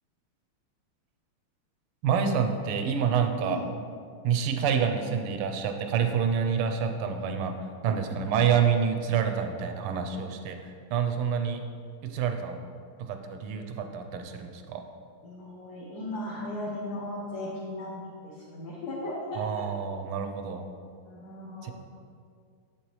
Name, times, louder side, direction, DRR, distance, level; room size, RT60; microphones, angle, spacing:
voice 1, 2.0-3.6 4.2-11.6 12.0-12.6 13.0-14.8 19.4-20.7 21.6-21.7, right 7 dB, 85° right, 6 dB, 1.6 m, -28 dB
voice 2, 15.2-19.6 21.0-21.7, left 1 dB, 55° left, -6 dB, 1.3 m, -37 dB
7.8 x 6.9 x 3.1 m, 2.2 s
omnidirectional pair, 2.4 m